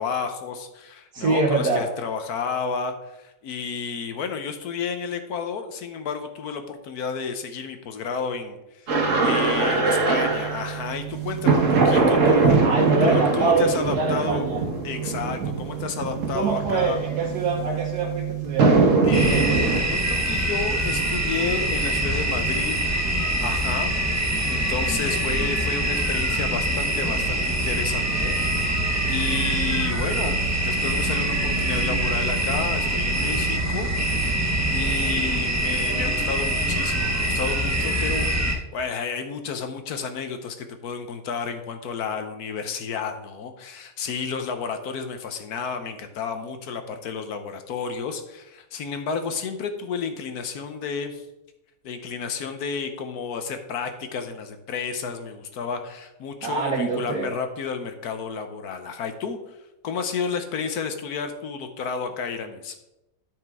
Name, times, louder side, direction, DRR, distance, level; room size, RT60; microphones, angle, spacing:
voice 1, 0.0-12.6 13.0-14.4 14.8-17.0 19.0-22.8 23.4-24.1 24.4-51.3 51.8-59.6 59.8-62.8, left 5 dB, 70° left, 7 dB, 1.3 m, -31 dB
voice 2, 1.1-1.8 12.6-14.6 16.3-18.8 56.4-57.3, right 4 dB, 70° right, -2 dB, 1.5 m, -24 dB
sound 1, 8.9-19.8, right 4 dB, 55° right, 1.5 m, -22 dB
sound 2, 19.1-38.6, right 1 dB, 20° right, 0.4 m, -24 dB
12.5 x 5.0 x 3.6 m, 0.93 s
omnidirectional pair, 1.7 m